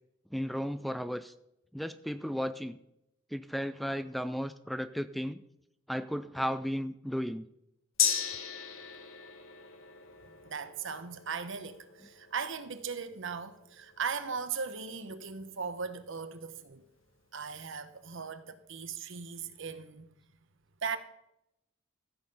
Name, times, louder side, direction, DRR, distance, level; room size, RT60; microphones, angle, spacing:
voice 1, 0.3-1.3 1.7-2.8 3.3-5.4 5.9-7.5, equal, ahead, 0.3 m, -34 dB
Gong, 8.0-15.8 16.1-16.2, left 8 dB, 90° left, 1.3 m, -37 dB
voice 2, 10.2-16.8 17.3-20.1 20.8-21.0, right 5 dB, 70° right, 0.9 m, -38 dB
14.5 x 6.6 x 5.4 m
head